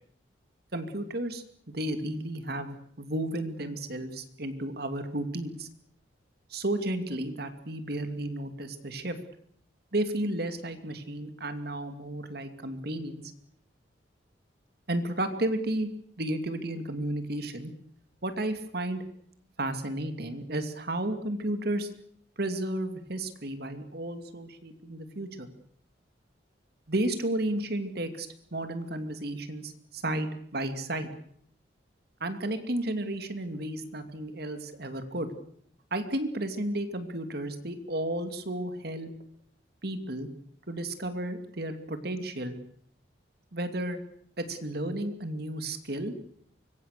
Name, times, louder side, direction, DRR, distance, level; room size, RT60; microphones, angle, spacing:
voice 1, 0.7-5.7 6.5-9.2 9.9-13.2 14.9-15.9 16.2-17.7 18.2-19.0 19.6-21.9 22.4-25.5 26.9-31.1 32.2-35.3 35.9-39.1 39.8-40.3 40.7-42.6 43.5-44.0 44.4-46.1, right 1 dB, 60° right, 8 dB, 2.6 m, -33 dB
25.0 x 23.5 x 6.7 m, 0.65 s
head